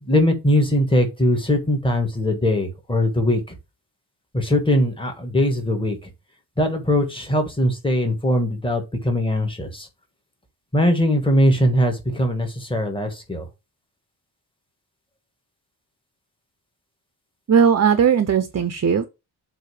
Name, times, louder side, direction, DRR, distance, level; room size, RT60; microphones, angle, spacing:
voice 1, 0.0-3.5 4.3-6.0 6.6-9.9 10.7-13.5, equal, 10° left, 1.4 m, -21 dB
voice 2, 17.5-19.1, right 7 dB, 40° right, 0.6 m, -17 dB
7.6 x 2.7 x 4.8 m
wide cardioid pair, 170°, 41 cm